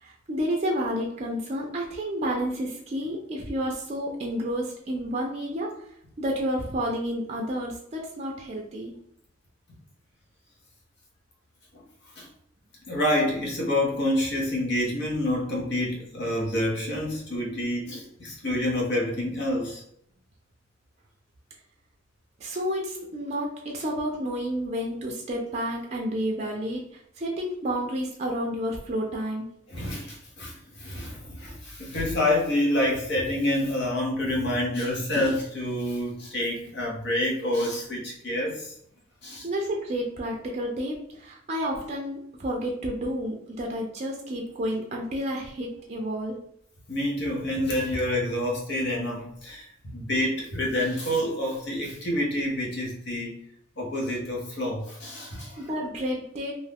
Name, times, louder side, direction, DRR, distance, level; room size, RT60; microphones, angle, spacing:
voice 1, 0.0-8.9 22.4-29.5 39.4-46.4 55.6-56.5, equal, 35° right, 0 dB, 0.4 m, -30 dB
voice 2, 12.9-19.8 29.7-38.7 39.2-39.5 46.9-53.4 53.8-55.6, left 1 dB, 60° left, -2 dB, 0.9 m, -28 dB
2.5 x 2.3 x 3.4 m, 0.70 s
head